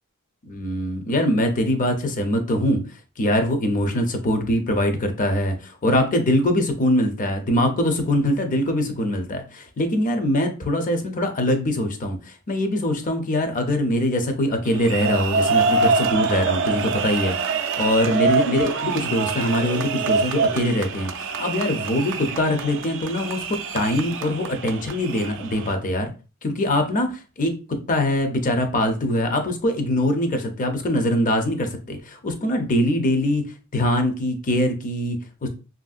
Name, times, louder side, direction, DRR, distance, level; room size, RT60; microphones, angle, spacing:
voice 1, 0.5-2.8 3.2-26.1 26.4-27.5 27.9-33.4 33.7-35.5, left 1 dB, 40° left, 6 dB, 0.5 m, -23 dB
sound 1, 14.7-25.7, right 4 dB, 60° right, 0.3 m, -25 dB
3.0 x 2.6 x 2.4 m, 0.34 s
head